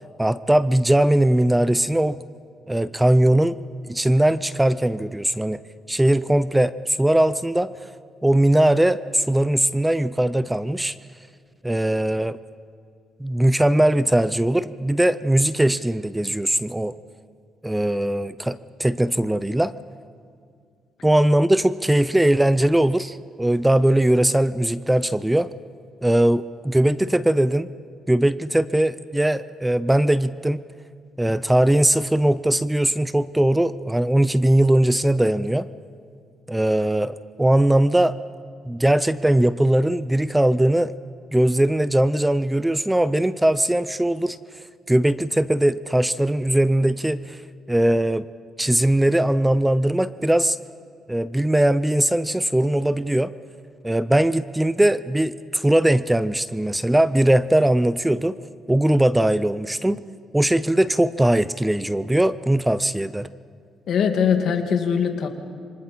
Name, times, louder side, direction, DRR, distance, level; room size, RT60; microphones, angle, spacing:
voice 1, 0.2-2.2 2.7-3.6 3.9-5.6 5.9-7.7 8.2-10.9 11.6-12.4 13.2-17.0 17.6-19.7 21.0-25.5 26.0-27.7 28.1-30.6 31.2-35.7 36.5-38.2 38.7-40.9 41.3-44.4 44.9-47.4 47.7-48.3 48.6-50.6 51.1-53.3 53.8-58.4 58.7-60.0 60.3-63.3, right 1 dB, 10° right, 15 dB, 0.5 m, -20 dB
voice 2, 63.9-65.3, left 7 dB, 65° left, 5 dB, 2.2 m, -21 dB
27.0 x 24.5 x 4.4 m, 2.2 s
cardioid pair, 90°, 0 cm